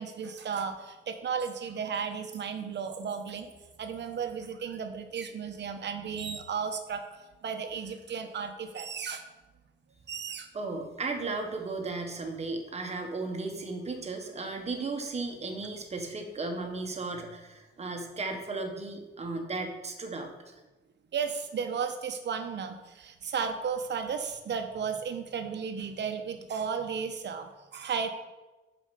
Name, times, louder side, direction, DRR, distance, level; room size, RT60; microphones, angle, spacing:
voice 1, 0.0-3.5 3.8-7.0 7.4-9.2 10.1-10.5 21.1-28.1, right 6 dB, 55° right, 6 dB, 0.9 m, -34 dB
voice 2, 10.5-20.3, right 3 dB, 30° right, 4 dB, 1.1 m, -35 dB
6.5 x 5.2 x 6.7 m, 1.1 s
wide cardioid pair, 175°, 21 cm